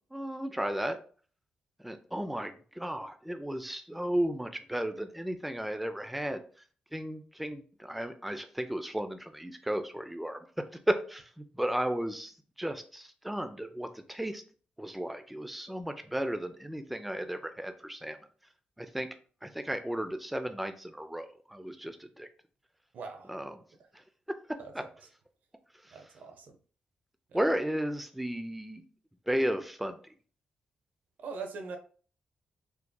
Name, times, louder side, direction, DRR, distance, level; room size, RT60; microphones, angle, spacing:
voice 1, 0.1-1.0 1.8-6.4 6.9-10.5 10.9-14.4 14.8-18.2 18.8-19.1 19.4-22.3 23.3-23.6 23.9-24.0 24.3-24.8 25.8-26.0 27.3-28.8 29.3-30.0, right 1 dB, 5° right, 0.4 m, -34 dB
voice 2, 22.9-23.3 24.6-24.7 25.9-26.5 27.3-27.4 31.2-31.8, right 4 dB, 75° right, 0.5 m, -41 dB
4.5 x 2.6 x 2.2 m
cardioid pair, 95°, 3 cm